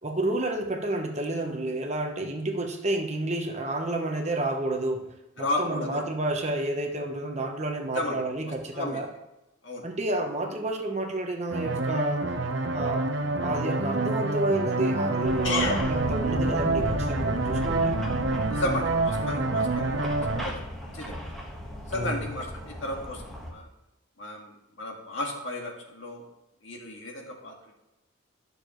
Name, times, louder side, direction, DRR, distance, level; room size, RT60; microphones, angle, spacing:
voice 1, 0.0-5.1 5.4-9.1 9.8-12.2 12.7-13.1 13.4-18.0 21.9-22.3, right 2 dB, 35° right, 3 dB, 1.0 m, -30 dB
voice 2, 5.4-6.0 7.9-8.2 8.7-9.0 9.6-9.8 15.4-15.8 18.5-20.5 20.8-21.1 21.9-23.7 24.2-24.5 24.8-26.2 26.6-27.7, left 2 dB, 65° left, 0 dB, 1.8 m, -33 dB
sound 1, 11.5-20.4, right 2 dB, 60° right, 0.8 m, -27 dB
sound 2, 15.2-23.5, equal, ahead, 1.4 m, -36 dB
12.0 x 6.7 x 3.1 m, 0.93 s
head